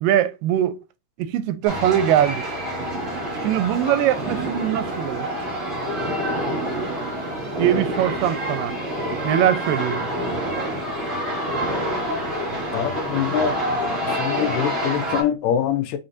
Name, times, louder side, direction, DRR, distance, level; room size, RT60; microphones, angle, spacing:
voice 1, 0.0-0.8 1.2-2.5 3.4-5.3 7.6-8.7 9.2-10.1, right 11 dB, 85° right, 2.2 m, -21 dB
sound 1, 1.6-15.2, equal, 30° right, 1.2 m, -27 dB
voice 2, 12.7-13.6 14.1-16.0, left 9 dB, 80° left, 2.3 m, -24 dB
5.4 x 3.5 x 2.6 m
omnidirectional pair, 3.9 m